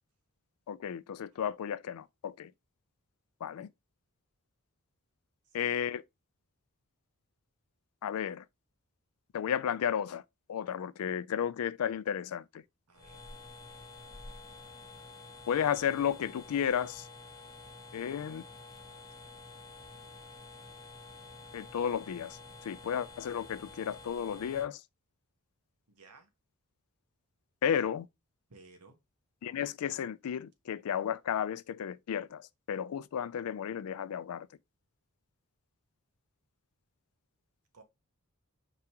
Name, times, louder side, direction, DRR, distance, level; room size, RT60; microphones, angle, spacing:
voice 1, 0.7-2.5 3.4-3.7 5.5-6.0 8.0-8.4 9.3-10.2 10.5-12.6 15.5-17.1 17.9-18.4 21.5-24.8 27.6-28.1 29.4-34.5, left 8 dB, 70° left, 0.3 m, -33 dB
voice 2, 5.4-5.8 12.9-13.3 25.9-26.3 28.5-29.0 37.7-37.8, right 3 dB, 85° right, 1.1 m, -57 dB
sound 1, 12.9-24.7, left 3 dB, 15° left, 0.7 m, -50 dB
4.9 x 3.5 x 2.8 m
head